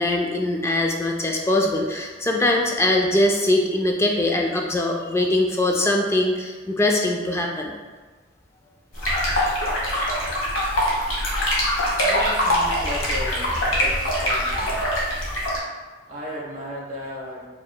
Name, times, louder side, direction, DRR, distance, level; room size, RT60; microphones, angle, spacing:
voice 1, 0.0-7.7, left 1 dB, 15° left, 1 dB, 0.3 m, -22 dB
sound 1, 9.0-15.6, equal, 85° left, 1.2 m, -23 dB
voice 2, 12.0-14.8 16.1-17.5, equal, 40° right, -4 dB, 1.0 m, -34 dB
4.9 x 3.2 x 2.2 m, 1.4 s
head